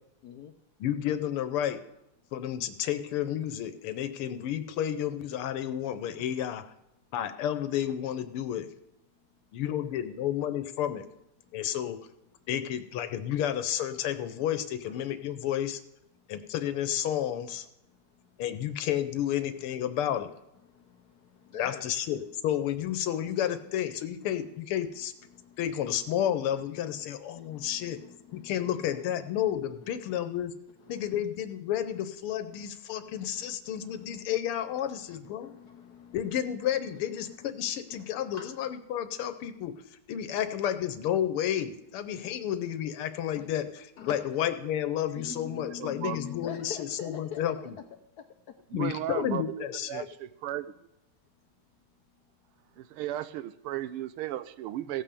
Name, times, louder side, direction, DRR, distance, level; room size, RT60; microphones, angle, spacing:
voice 1, 0.2-0.5 11.4-11.6 14.9-15.0 16.1-16.3 17.8-18.4 19.9-20.0 20.6-22.1 23.2-23.7 24.2-24.4 24.9-26.1 26.6-29.4 29.8-30.2 30.8-31.3 31.9-32.0 32.5-32.7 33.0-34.4 34.8-38.6 40.4-40.5 42.2-42.4 43.3-43.5 44.0-44.4 45.1-48.6, left 8 dB, 70° left, 7 dB, 0.9 m, -47 dB
voice 2, 0.8-1.8 2.3-6.6 7.1-8.7 9.5-11.0 11.5-12.0 12.5-15.8 16.3-17.7 18.4-20.3 21.6-25.1 25.6-28.0 28.3-30.5 30.9-35.5 36.1-39.7 40.1-47.6 48.7-50.1, left 10 dB, 85° left, 10 dB, 1.7 m, -31 dB
voice 3, 45.2-46.3 48.7-50.6 52.8-55.0, right 13 dB, 90° right, 14 dB, 1.5 m, -36 dB
16.0 x 5.6 x 6.8 m, 0.86 s
omnidirectional pair, 2.4 m